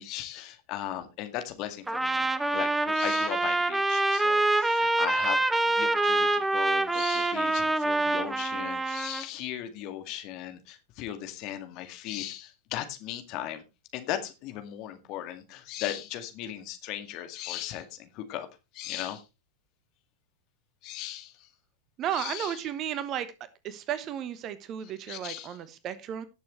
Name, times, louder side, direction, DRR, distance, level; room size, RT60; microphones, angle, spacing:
voice 1, 0.0-5.4 5.8-13.6 13.9-18.5 18.7-19.2 20.8-21.3 22.1-22.7 25.1-25.6, left 12 dB, 40° left, 7 dB, 2.1 m, -37 dB
Trumpet, 1.9-9.2, right 2 dB, 5° right, 0.9 m, -26 dB
voice 2, 22.0-23.3 23.6-26.3, right 10 dB, 35° right, 15 dB, 1.2 m, -33 dB
18.0 x 7.2 x 3.2 m, 0.26 s
figure-of-eight pair, 90°, 0 cm